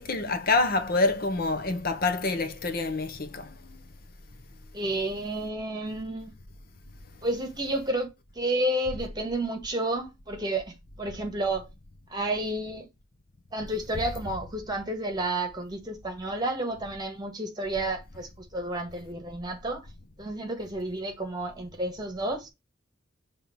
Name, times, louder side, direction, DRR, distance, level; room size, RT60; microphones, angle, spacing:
voice 1, 0.0-3.6, left 3 dB, 55° left, 0.9 m, -26 dB
voice 2, 4.7-6.4 7.2-11.7 12.1-12.9 13.5-19.9 20.2-22.5, right 1 dB, 25° right, 1.7 m, -31 dB
5.8 x 3.6 x 5.3 m
head